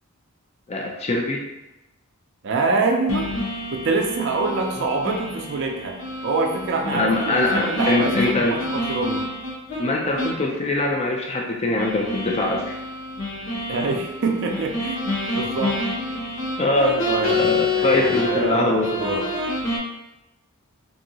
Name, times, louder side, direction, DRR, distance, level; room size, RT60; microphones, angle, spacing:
voice 1, 0.7-1.4 4.7-4.8 6.9-8.6 9.8-12.7 16.6-18.9, left 2 dB, 30° left, 0 dB, 0.3 m, -23 dB
voice 2, 2.4-3.3 3.7-6.0 6.2-9.3 13.7-15.0 15.3-15.8 17.1-17.4 17.7-19.2, right 3 dB, 55° right, 2 dB, 0.4 m, -25 dB
sound 1, 3.1-9.8 10.2-10.4 10.8-10.9 11.8-18.5 18.8-19.8, left 2 dB, 60° left, 0.9 m, -28 dB
2.8 x 2.6 x 2.7 m, 0.94 s
head